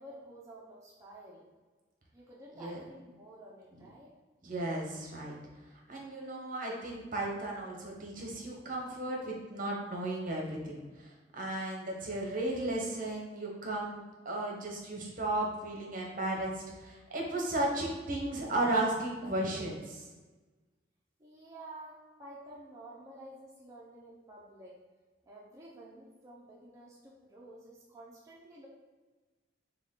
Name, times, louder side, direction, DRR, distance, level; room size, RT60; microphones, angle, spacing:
voice 1, 0.0-1.5 2.1-4.1 21.2-24.8 25.3-28.7, right 1 dB, 15° right, -5 dB, 0.6 m, -51 dB
voice 2, 4.4-5.3 5.9-20.1, right 1 dB, 50° right, -1 dB, 1.0 m, -35 dB
5.9 x 2.3 x 3.7 m, 1.3 s
head